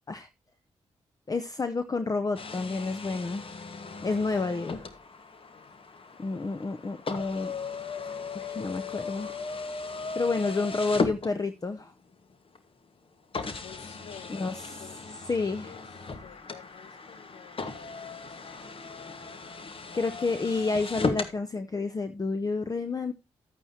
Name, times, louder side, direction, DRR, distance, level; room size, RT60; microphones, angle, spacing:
voice 1, 1.3-3.5 4.0-4.8 6.2-7.5 8.3-9.3 10.2-11.9 14.3-14.7 15.3-15.8 19.9-23.1, left 3 dB, 30° left, 0.7 m, -30 dB
sound 1, 2.4-11.8 12.6-12.7 13.3-21.4, left 4 dB, 50° left, 1.4 m, -36 dB
voice 2, 13.6-15.9 16.2-18.4 18.6-18.8, left 9 dB, 75° left, 0.6 m, -51 dB
11.5 x 8.9 x 2.8 m
supercardioid pair, 50°, 12 cm